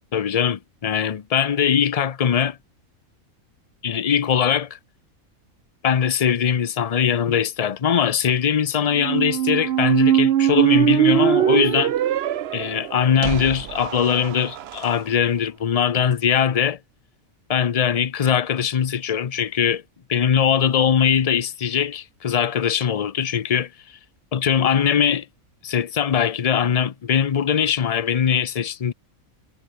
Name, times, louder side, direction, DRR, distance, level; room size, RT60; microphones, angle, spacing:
voice 1, 0.1-2.6 3.8-4.8 5.8-11.9 12.5-16.8 17.5-19.8 20.1-23.7 24.3-25.3 25.6-28.9, left 8 dB, 50° left, 0.4 m, -21 dB
Squeak, 8.9-14.9, right 11 dB, 60° right, 0.8 m, -21 dB
omnidirectional pair, 1.5 m